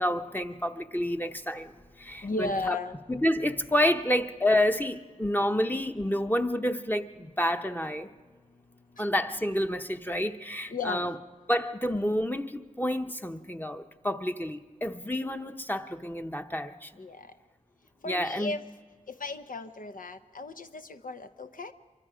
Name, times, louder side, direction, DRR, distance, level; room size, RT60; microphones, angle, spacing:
voice 1, 0.0-2.8 3.1-8.1 9.0-11.2 11.5-17.0 18.0-18.5, left 1 dB, 15° left, 6 dB, 0.8 m, -29 dB
voice 2, 2.2-2.9 9.0-9.1 10.7-11.1 17.0-17.3 18.0-18.6 19.1-21.7, left 3 dB, 85° left, 8 dB, 0.7 m, -35 dB
25.0 x 24.0 x 5.0 m, 1.3 s
wide cardioid pair, 45°, 14 cm